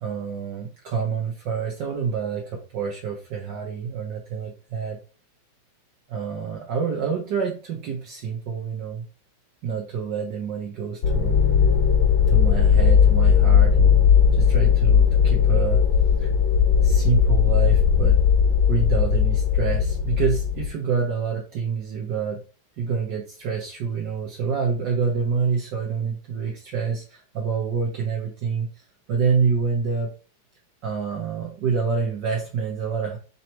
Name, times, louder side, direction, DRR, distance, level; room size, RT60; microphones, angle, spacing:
voice 1, 0.0-5.0 6.1-9.0 9.6-11.4 12.3-15.8 16.2-16.3 16.8-18.2 18.7-22.4 22.8-28.7 29.1-30.1 30.8-33.2, right 6 dB, 65° right, -1 dB, 1.5 m, -27 dB
sound 1, 11.0-20.7, left 7 dB, 65° left, 1.5 m, -18 dB
4.1 x 2.9 x 4.4 m, 0.36 s
omnidirectional pair, 2.1 m